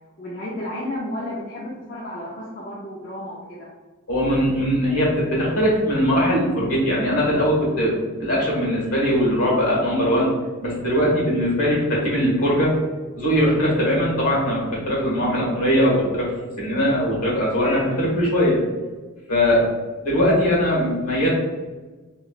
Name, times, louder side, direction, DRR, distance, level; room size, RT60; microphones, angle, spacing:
voice 1, 0.2-3.7, left 1 dB, 35° left, -5 dB, 0.4 m, -32 dB
voice 2, 4.1-10.3 10.6-12.8 13.2-16.3 16.6-18.6 19.3-19.7 20.0-21.3, equal, 85° left, -4 dB, 1.3 m, -20 dB
3.0 x 3.0 x 2.3 m, 1.3 s
head